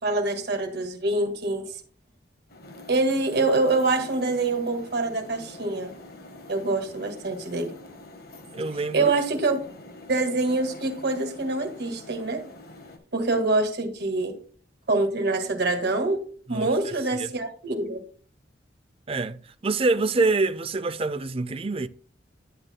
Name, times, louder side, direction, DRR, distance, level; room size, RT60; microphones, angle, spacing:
voice 1, 0.0-1.8 2.9-5.9 6.5-7.7 8.9-9.6 10.1-12.4 13.1-14.3 14.9-18.0, right 2 dB, 65° right, 1.9 m, -25 dB
sound 1, 2.5-13.0, left 2 dB, 60° left, 1.5 m, -46 dB
voice 2, 8.5-9.1 16.5-16.7 17.1-17.3 19.1-21.9, right 3 dB, 30° right, 0.5 m, -26 dB
11.0 x 8.4 x 2.2 m
head